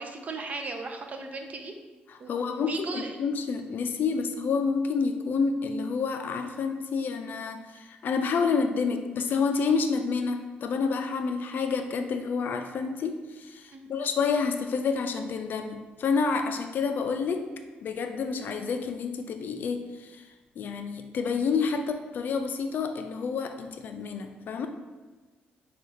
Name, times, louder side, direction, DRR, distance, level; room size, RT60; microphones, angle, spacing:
voice 1, 0.0-1.7 2.2-3.1 13.7-13.9, right 3 dB, 45° right, 4 dB, 0.5 m, -37 dB
voice 2, 2.1-17.5 17.8-24.7, left 5 dB, 60° left, 6 dB, 0.4 m, -29 dB
5.3 x 2.3 x 3.2 m, 1.2 s
cardioid pair, 100°, 4 cm